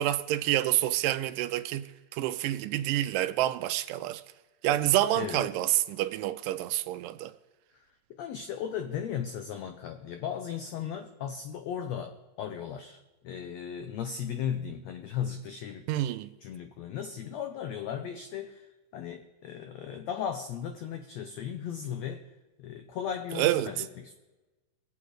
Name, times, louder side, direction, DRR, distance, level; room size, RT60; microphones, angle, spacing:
voice 1, 0.0-4.2 4.6-7.3 15.9-16.3 23.4-23.7, right 14 dB, 80° right, 2.1 m, -28 dB
voice 2, 5.2-5.5 8.2-13.0 13.2-15.9 16.4-18.7 18.9-22.2 22.6-24.1, left 8 dB, 90° left, 1.5 m, -36 dB
21.5 x 8.3 x 4.9 m
omnidirectional pair, 4.0 m